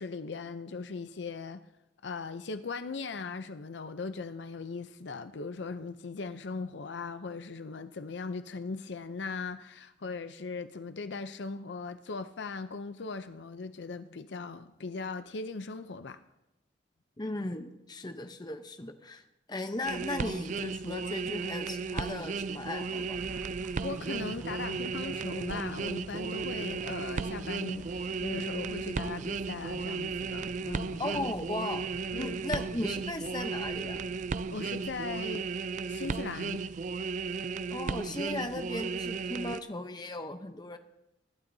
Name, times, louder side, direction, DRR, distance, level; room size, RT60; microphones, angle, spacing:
voice 1, 0.0-1.6 2.0-16.2 23.8-31.2 32.1-32.6 34.5-35.5 35.9-36.6, left 4 dB, 70° left, 0.6 m, -39 dB
voice 2, 17.2-19.2 19.5-23.2 31.0-31.8 32.2-34.0 37.7-40.8, left 2 dB, 20° left, 0.8 m, -37 dB
sound 1, 19.8-39.6, right 4 dB, 40° right, 0.3 m, -35 dB
sound 2, 22.4-35.5, equal, 10° right, 0.8 m, -50 dB
24.0 x 11.5 x 2.7 m
head